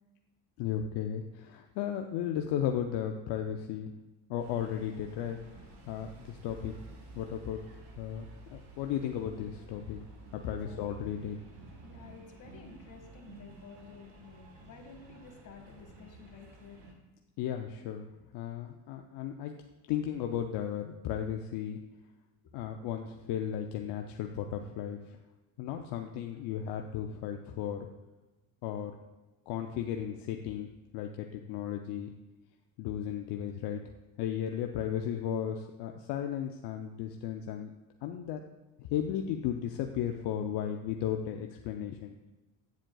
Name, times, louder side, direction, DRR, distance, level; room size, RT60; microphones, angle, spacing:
voice 1, 0.6-3.9 4.3-5.4 5.9-6.7 7.1-7.6 8.0-10.0 10.3-11.4 17.4-18.1 18.3-19.5 19.9-21.8 22.5-25.2 25.6-27.9 28.6-28.9 29.5-30.7 30.9-32.1 32.8-33.8 34.2-37.7 38.0-38.4 38.8-42.1, left 9 dB, 75° left, 4 dB, 0.6 m, -35 dB
sound 1, 4.4-16.9, right 3 dB, 80° right, 1.4 m, -51 dB
voice 2, 10.5-10.9 11.8-16.8, left 5 dB, 50° left, 3 dB, 1.6 m, -52 dB
9.0 x 7.3 x 2.3 m, 1.1 s
supercardioid pair, 90°, 41 cm